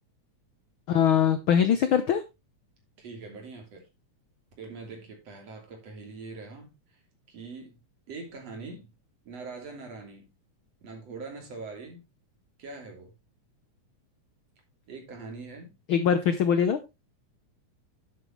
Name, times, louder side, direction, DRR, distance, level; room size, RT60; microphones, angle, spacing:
voice 1, 0.9-2.2 15.9-16.8, left 8 dB, 75° left, 1.2 m, -22 dB
voice 2, 3.0-3.9 4.6-7.0 7.3-7.8 8.1-8.9 9.3-10.3 10.8-12.0 12.6-13.1 14.9-15.8, right 4 dB, 55° right, 4.1 m, -42 dB
10.5 x 8.4 x 3.2 m
omnidirectional pair, 3.4 m